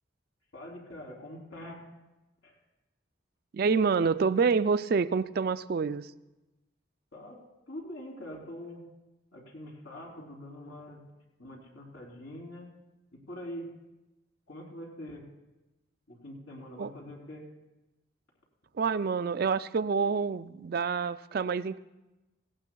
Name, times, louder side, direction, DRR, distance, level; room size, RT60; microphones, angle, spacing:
voice 1, 0.5-1.9 2.4-2.6 7.1-7.4 7.7-8.8 9.3-11.0 11.4-12.7 13.1-13.7 14.5-15.3 16.1-17.4, left 1 dB, 90° left, 0 dB, 3.3 m, -44 dB
voice 2, 3.5-6.1 16.8-16.9 18.7-21.8, right 5 dB, 50° right, 14 dB, 0.3 m, -27 dB
18.0 x 17.5 x 2.3 m, 1.0 s
head